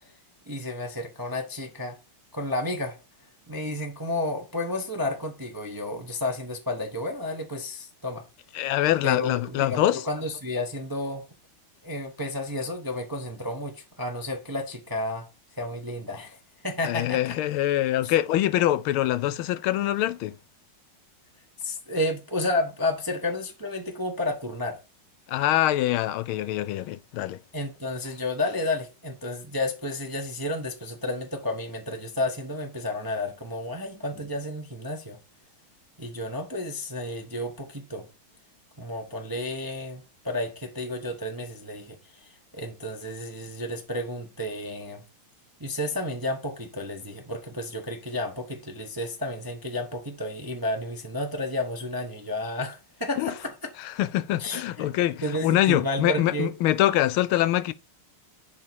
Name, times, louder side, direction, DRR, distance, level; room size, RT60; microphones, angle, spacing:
voice 1, 0.5-2.0 2.3-3.0 3.5-8.2 9.0-11.2 11.8-15.3 15.6-16.4 16.6-17.4 18.0-18.1 21.6-24.8 27.5-35.2 36.0-38.1 38.8-45.0 45.6-53.7 54.4-54.8 55.2-56.5, left 1 dB, 20° right, 0.6 m, -31 dB
voice 2, 8.5-10.0 16.8-20.3 25.3-27.4 53.2-53.3 53.8-57.7, left 13 dB, 80° left, 1.4 m, -24 dB
11.0 x 3.7 x 4.7 m
omnidirectional pair, 2.3 m